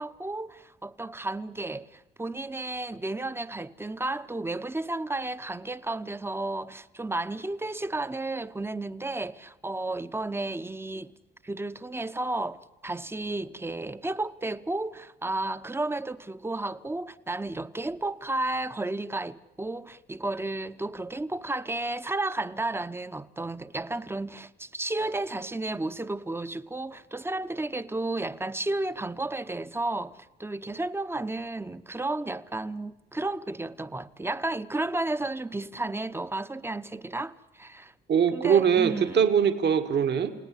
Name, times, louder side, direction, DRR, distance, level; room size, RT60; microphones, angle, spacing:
voice 1, 0.0-11.1 11.4-37.9 38.3-39.2, right 2 dB, 10° right, 0.9 m, -32 dB
voice 2, 38.1-40.3, right 7 dB, 60° right, 2.0 m, -22 dB
30.0 x 18.0 x 10.0 m
cardioid pair, 90°, 20 cm